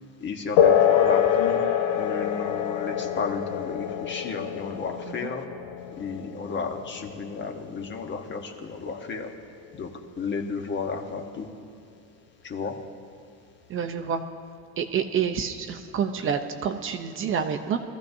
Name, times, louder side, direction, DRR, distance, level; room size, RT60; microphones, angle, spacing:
voice 1, 0.2-5.5 6.0-9.4 9.7-11.5 12.4-12.9, left 4 dB, 35° left, 4 dB, 1.1 m, -33 dB
sound 1, 0.6-8.6, left 9 dB, 80° left, 0.9 m, -25 dB
voice 2, 13.7-14.2 14.8-17.8, right 7 dB, 35° right, 7 dB, 0.6 m, -28 dB
22.5 x 14.5 x 2.7 m, 2.3 s
cardioid pair, 145°, 35 cm